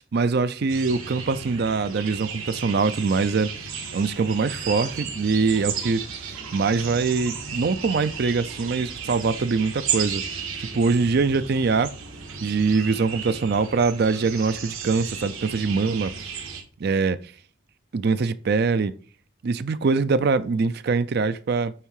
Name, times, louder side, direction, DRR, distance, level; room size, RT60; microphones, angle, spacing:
voice 1, 0.0-10.2 10.6-11.9 12.4-16.4 16.8-17.3 17.9-18.9 19.4-21.7, right 4 dB, 50° right, 0.4 m, -23 dB
sound 1, 0.7-16.6, right 6 dB, 85° right, 1.7 m, -34 dB
8.9 x 3.7 x 4.7 m
head